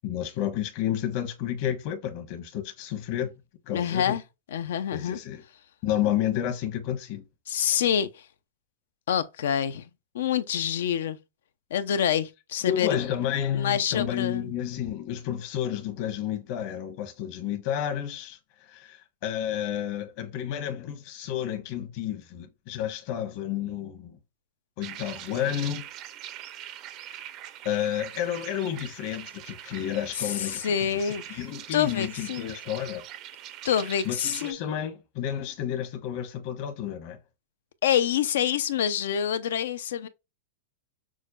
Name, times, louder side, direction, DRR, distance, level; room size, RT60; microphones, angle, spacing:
voice 1, 0.0-3.3 3.7-4.1 4.9-5.4 5.8-7.2 12.7-24.2 24.8-25.8 27.6-33.0 34.0-37.2, left 10 dB, 50° left, 1.1 m, -31 dB
voice 2, 3.7-4.2 4.5-5.2 7.5-8.2 9.1-9.9 10.1-11.2 11.7-13.0 13.5-14.5 30.2-31.4 31.7-32.5 33.6-34.6 37.8-40.1, left 9 dB, 80° left, 0.5 m, -26 dB
sound 1, 24.8-34.5, right 12 dB, 40° right, 0.5 m, -42 dB
6.2 x 2.2 x 2.3 m
supercardioid pair, 140°, 0 cm